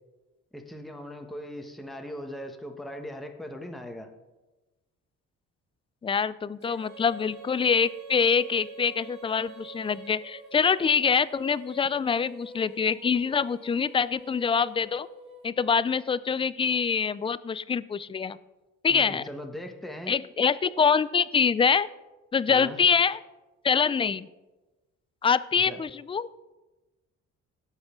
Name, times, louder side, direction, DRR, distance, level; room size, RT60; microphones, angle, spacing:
voice 1, 0.5-4.1 18.9-20.1 22.5-22.8 25.6-25.8, left 1 dB, ahead, 3 dB, 1.2 m, -39 dB
voice 2, 6.0-15.1 15.4-18.4 18.8-19.2 20.1-21.9 22.3-23.2 23.6-24.3 25.2-26.3, left 6 dB, 20° left, 17 dB, 0.3 m, -25 dB
Female singing, 6.6-15.8, right 2 dB, 35° right, 4.1 m, -47 dB
17.5 x 6.3 x 3.7 m, 1.1 s
cardioid pair, 90°, 30 cm